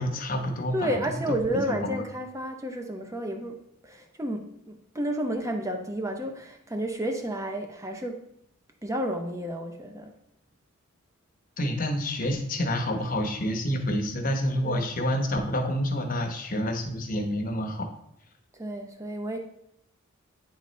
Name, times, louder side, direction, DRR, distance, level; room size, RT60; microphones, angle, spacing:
voice 1, 0.0-1.0 1.3-1.9 11.6-17.9, equal, 40° left, 4 dB, 0.9 m, -28 dB
voice 2, 0.7-8.2 8.8-10.1 14.6-14.9 18.5-19.4, equal, 15° right, 4 dB, 0.6 m, -31 dB
9.6 x 4.0 x 3.2 m, 0.78 s
head